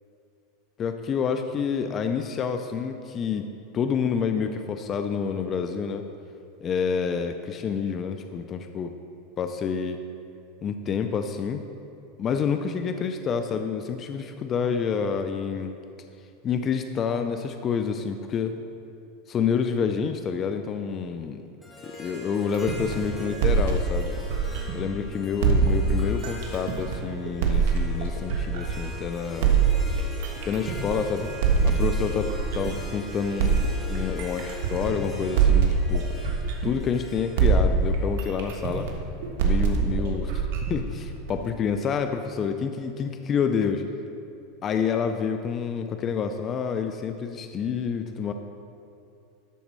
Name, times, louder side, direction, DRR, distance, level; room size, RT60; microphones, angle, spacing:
voice 1, 0.8-3.5 3.7-6.0 6.6-8.9 9.4-10.0 10.6-11.6 12.2-15.7 16.4-18.6 19.3-21.4 21.8-24.2 24.7-29.6 30.4-31.3 31.6-33.6 33.9-36.0 36.6-38.9 39.4-43.8 44.6-48.3, left 6 dB, 30° left, 7 dB, 0.4 m, -28 dB
Harp, 21.6-38.9, equal, 5° left, 1.8 m, -43 dB
sound 1, 22.5-25.0 25.4-28.9 29.4-32.9 33.4-37.1 37.4-41.5, right 5 dB, 70° right, 1.3 m, -24 dB
12.5 x 4.1 x 6.2 m, 2.6 s
supercardioid pair, 140°, 0 cm